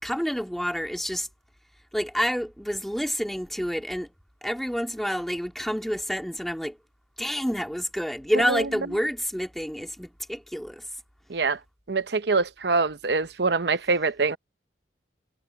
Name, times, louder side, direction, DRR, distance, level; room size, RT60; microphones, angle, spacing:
voice 1, 0.0-1.3 1.9-4.1 4.4-6.8 7.2-10.8, equal, ahead, 2.4 m, -28 dB
voice 2, 8.5-9.0 11.3-11.6 11.9-14.4, right 4 dB, 65° right, 0.8 m, -25 dB
head